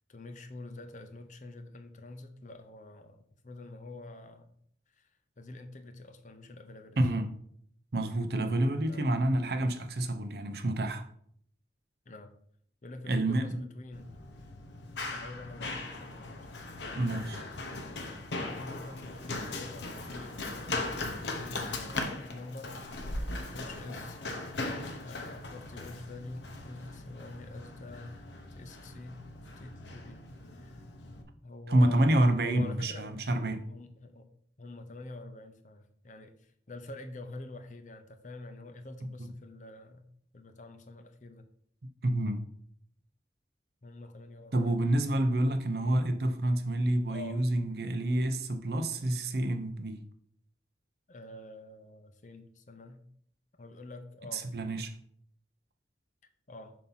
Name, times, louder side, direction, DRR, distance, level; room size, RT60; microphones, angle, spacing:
voice 1, 0.1-4.5 4.9-5.1 5.4-7.0 8.9-9.2 12.1-12.3 12.8-14.1 15.0-16.5 16.8-17.0 18.5-22.8 23.5-24.2 25.0-28.2 28.5-29.2 29.6-30.3 30.5-30.8 31.4-33.1 33.7-34.3 34.6-40.1 40.3-41.5 43.8-44.8 47.1-47.4 51.1-53.0 53.6-54.5 56.5-56.8, left 2 dB, 45° left, 0.7 m, -46 dB
voice 2, 7.0-7.3 7.9-11.0 13.1-13.6 16.9-17.4 31.7-33.7 39.2-39.3 42.0-42.4 44.5-50.0 54.3-54.9, right 1 dB, 60° right, 0.7 m, -28 dB
Run, 13.9-31.2, left 2 dB, 80° left, 0.9 m, -39 dB
7.4 x 2.8 x 5.6 m
head